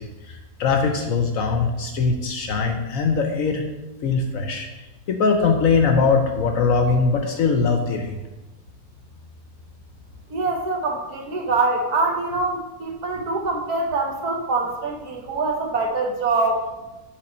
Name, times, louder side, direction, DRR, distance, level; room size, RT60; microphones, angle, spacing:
voice 1, 0.0-3.7 4.0-4.7 5.1-8.2, left 4 dB, 65° left, 3 dB, 0.9 m, -21 dB
voice 2, 10.3-16.7, right 3 dB, 70° right, 1 dB, 1.4 m, -24 dB
7.4 x 3.7 x 4.1 m, 1.1 s
omnidirectional pair, 1.8 m